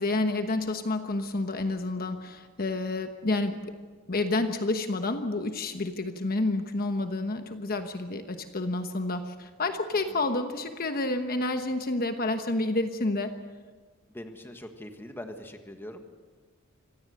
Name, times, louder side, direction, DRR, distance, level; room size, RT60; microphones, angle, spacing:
voice 1, 0.0-3.6 4.1-13.3, left 2 dB, 45° left, 7 dB, 1.2 m, -29 dB
voice 2, 2.0-2.3 14.1-16.1, left 1 dB, 10° left, 5 dB, 1.6 m, -42 dB
25.0 x 17.5 x 6.6 m, 1.5 s
head